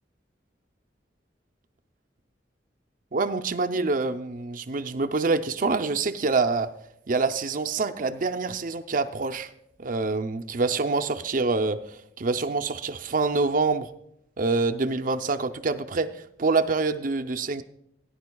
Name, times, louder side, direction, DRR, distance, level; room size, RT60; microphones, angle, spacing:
voice 1, 3.1-6.7 7.1-9.5 9.8-11.8 12.2-13.9 14.4-16.1 16.4-17.6, right 3 dB, 50° right, 8 dB, 0.6 m, -26 dB
18.0 x 10.5 x 2.3 m, 0.75 s
head